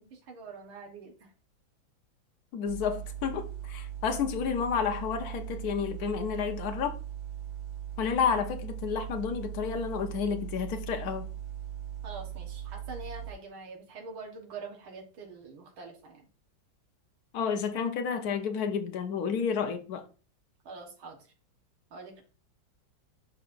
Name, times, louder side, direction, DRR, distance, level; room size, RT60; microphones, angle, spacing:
voice 1, 0.0-1.3 12.0-16.3 20.7-21.2 21.9-22.2, right 4 dB, 85° right, 2.2 m, -45 dB
voice 2, 2.5-7.0 8.0-11.3 17.3-20.0, left 6 dB, 60° left, 1.3 m, -30 dB
sound 1, 2.7-13.3, right 11 dB, 55° right, 2.2 m, -39 dB
11.5 x 4.2 x 2.6 m
omnidirectional pair, 2.2 m